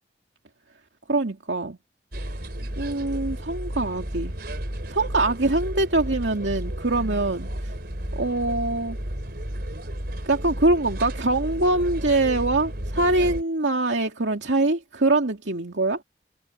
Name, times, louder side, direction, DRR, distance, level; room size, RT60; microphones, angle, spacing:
voice 1, 1.1-1.8 2.2-2.5 2.8-4.3 4.9-7.5 8.1-9.0 10.2-16.0, right 2 dB, 80° right, 2.4 m, -23 dB
sound 1, 2.1-13.4, right 1 dB, 60° right, 4.2 m, -32 dB
head